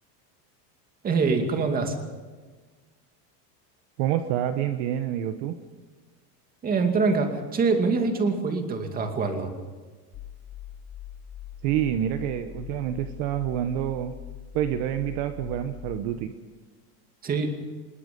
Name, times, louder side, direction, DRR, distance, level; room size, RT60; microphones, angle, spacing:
voice 1, 1.0-2.0 6.6-9.5 17.2-17.6, right 4 dB, 20° right, 5 dB, 2.4 m, -24 dB
voice 2, 4.0-5.5 11.6-14.1 14.5-16.3, right 11 dB, 45° right, 8 dB, 1.2 m, -27 dB
sound 1, 10.1-16.0, left 10 dB, 30° left, 1.0 m, -42 dB
25.0 x 21.5 x 5.3 m, 1.4 s
supercardioid pair, 165°, 47 cm